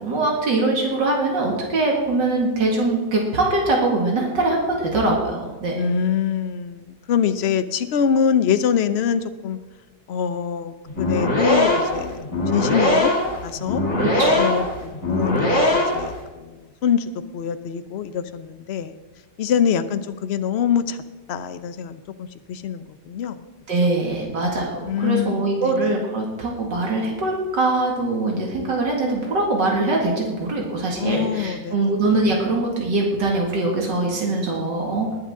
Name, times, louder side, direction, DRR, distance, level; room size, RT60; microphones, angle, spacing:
voice 1, 0.0-5.8 14.0-14.5 23.7-35.1, right 2 dB, 90° right, -1 dB, 2.7 m, -22 dB
voice 2, 5.7-9.6 10.1-13.1 13.4-13.8 14.3-19.0 19.4-21.0 21.3-23.4 24.8-25.9 31.0-31.9, left 7 dB, 60° left, 11 dB, 0.6 m, -24 dB
sound 1, 10.9-16.1, left 1 dB, 40° left, 3.1 m, -21 dB
20.0 x 9.7 x 3.7 m, 1.2 s
omnidirectional pair, 1.8 m